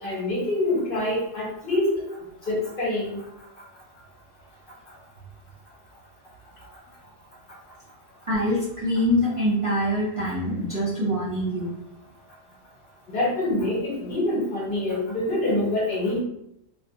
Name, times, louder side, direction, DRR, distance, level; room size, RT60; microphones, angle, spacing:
voice 1, 0.0-1.9 2.4-3.2 13.1-16.2, left 1 dB, 50° left, -5 dB, 0.8 m, -25 dB
voice 2, 8.3-11.7, equal, 30° right, -9 dB, 0.7 m, -24 dB
2.3 x 2.2 x 2.7 m, 0.78 s
omnidirectional pair, 1.3 m